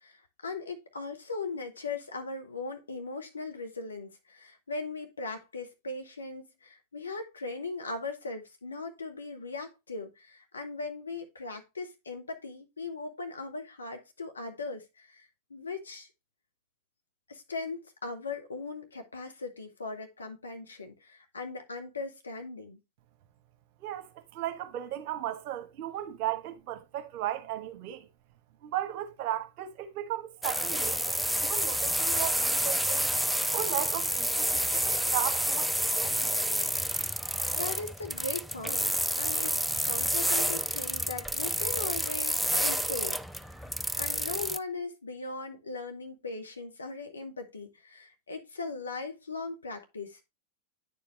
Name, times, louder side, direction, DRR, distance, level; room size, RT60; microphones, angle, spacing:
voice 1, 0.0-16.1 17.3-22.8 37.5-38.9 39.2-43.2 44.0-50.3, left 3 dB, 75° left, 1.4 m, -39 dB
voice 2, 24.3-28.1 28.6-33.1 33.5-36.4, right 12 dB, 45° right, 1.1 m, -36 dB
sound 1, 30.4-44.6, equal, ahead, 0.4 m, -29 dB
9.6 x 4.6 x 3.2 m
figure-of-eight pair, 90°, 0 cm